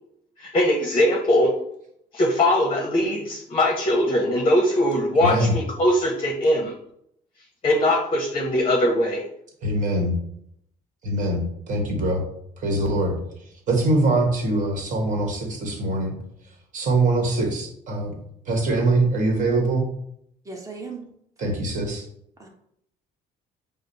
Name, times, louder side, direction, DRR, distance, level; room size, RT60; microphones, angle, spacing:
voice 1, 0.4-1.5 2.1-6.7 7.6-9.2, left 1 dB, 30° left, 0 dB, 0.7 m, -21 dB
voice 2, 5.2-5.5 9.6-10.1 11.0-12.2 12.6-13.2 13.7-16.2 16.7-18.1 18.5-19.8 21.4-22.0, right 2 dB, 50° right, 1 dB, 1.2 m, -23 dB
voice 3, 20.4-21.0 22.4-22.5, right 4 dB, 20° right, 1 dB, 0.9 m, -36 dB
4.9 x 2.0 x 4.0 m, 0.73 s
cardioid pair, 110°, 17 cm